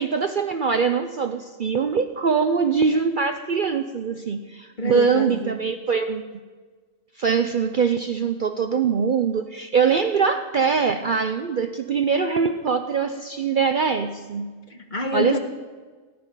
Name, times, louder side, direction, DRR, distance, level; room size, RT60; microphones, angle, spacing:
voice 1, 0.0-6.2 7.2-14.5 15.1-15.4, right 5 dB, 50° right, 8 dB, 0.6 m, -23 dB
voice 2, 4.8-5.6 14.7-15.4, left 1 dB, 40° left, 5 dB, 1.2 m, -27 dB
18.0 x 6.1 x 9.8 m, 1.4 s
omnidirectional pair, 1.3 m